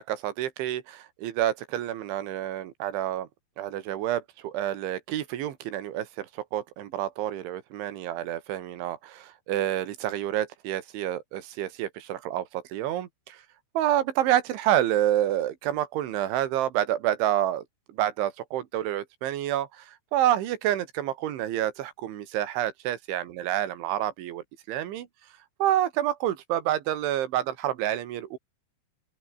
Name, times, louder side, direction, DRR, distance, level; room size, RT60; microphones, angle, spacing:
voice 1, 0.0-3.3 3.6-13.4 13.8-25.1 25.6-28.4, right 12 dB, 75° right, 4.1 m, -28 dB
open air
omnidirectional pair, 5.8 m